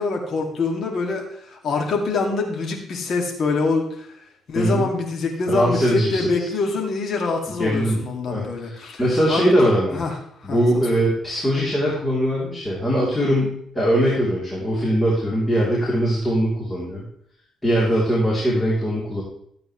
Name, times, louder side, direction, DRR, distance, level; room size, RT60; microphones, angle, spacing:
voice 1, 0.0-4.1 4.5-9.0 9.3-10.2 10.4-11.0, left 3 dB, 60° left, 1 dB, 2.5 m, -25 dB
voice 2, 4.5-4.9 5.5-6.5 7.6-8.0 8.3-10.0 10.4-17.0 17.6-19.2, equal, 15° left, -6 dB, 3.6 m, -21 dB
13.5 x 8.5 x 3.3 m, 0.68 s
cardioid pair, 90°, 0 cm